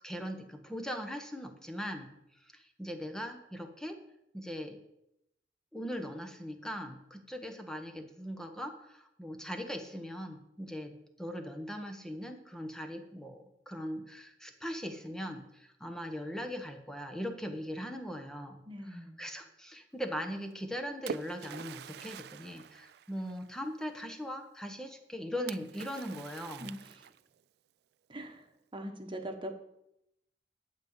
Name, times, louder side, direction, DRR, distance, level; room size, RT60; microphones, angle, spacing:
voice 1, 0.0-2.1 2.4-4.0 4.3-4.8 5.7-18.6 18.9-26.7, equal, 5° left, 5 dB, 1.2 m, -40 dB
voice 2, 18.7-19.2 26.6-27.1 28.1-28.5 28.7-29.5, equal, 30° right, 4 dB, 1.4 m, -42 dB
Splash splatter, 20.5-23.7 25.5-27.4, right 7 dB, 65° right, 0.3 m, -45 dB
11.5 x 5.2 x 8.2 m, 0.83 s
head